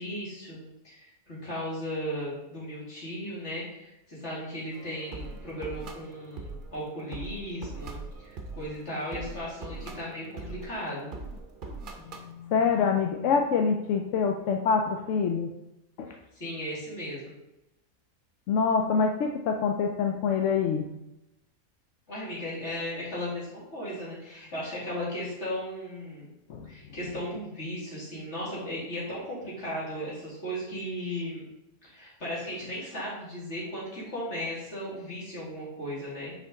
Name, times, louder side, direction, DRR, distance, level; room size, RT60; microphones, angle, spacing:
voice 1, 0.0-11.1 16.4-17.2 22.1-26.3 26.6-31.5 31.8-36.3, equal, 50° left, -8 dB, 2.9 m, -36 dB
sound 1, 4.7-12.3, right 3 dB, 45° right, 0.8 m, -42 dB
voice 2, 12.1-15.5 16.0-16.1 18.5-20.9 26.5-26.7, left 5 dB, 70° left, 3 dB, 0.8 m, -26 dB
5.9 x 4.4 x 3.9 m, 0.93 s
omnidirectional pair, 1.5 m